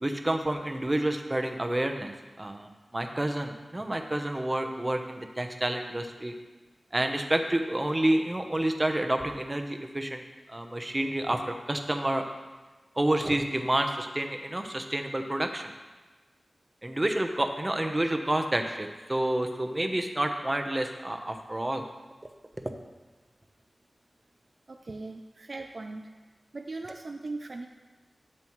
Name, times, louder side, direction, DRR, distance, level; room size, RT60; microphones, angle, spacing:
voice 1, 0.0-6.3 6.9-10.2 10.5-12.2 13.0-15.7 16.8-21.8, right 1 dB, 25° right, 5 dB, 0.9 m, -29 dB
voice 2, 24.7-26.1 26.5-27.7, right 3 dB, 60° right, 4 dB, 0.5 m, -39 dB
10.5 x 7.5 x 3.1 m, 1.2 s
cardioid pair, 50°, 0 cm